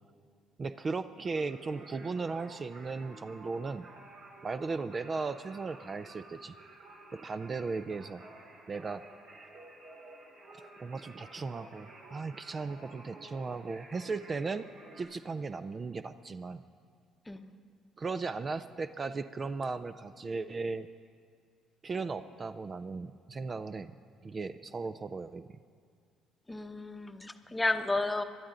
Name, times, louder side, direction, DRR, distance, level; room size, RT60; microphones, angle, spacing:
voice 1, 0.6-3.9 4.4-6.5 7.1-8.2 8.7-9.0 10.5-14.6 15.0-16.6 18.0-20.9 21.8-23.9 24.2-25.5, right 4 dB, 35° right, 11 dB, 0.4 m, -36 dB
Singing, 1.2-15.0, right 2 dB, 70° right, 3.5 m, -52 dB
voice 2, 26.5-28.2, left 2 dB, 15° left, 7 dB, 0.9 m, -32 dB
21.5 x 12.0 x 3.8 m, 2.1 s
supercardioid pair, 80°, 0 cm